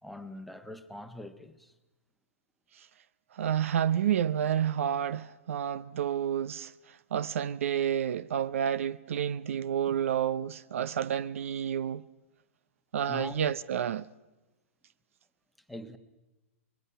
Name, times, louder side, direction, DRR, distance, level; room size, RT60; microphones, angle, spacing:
voice 1, 0.0-1.7 13.1-13.5 15.7-16.0, left 1 dB, ahead, 1.2 m, -43 dB
voice 2, 3.3-12.0 12.9-14.1, right 9 dB, 70° right, 0.7 m, -30 dB
24.0 x 21.5 x 5.7 m
hypercardioid pair, 125°, 8 cm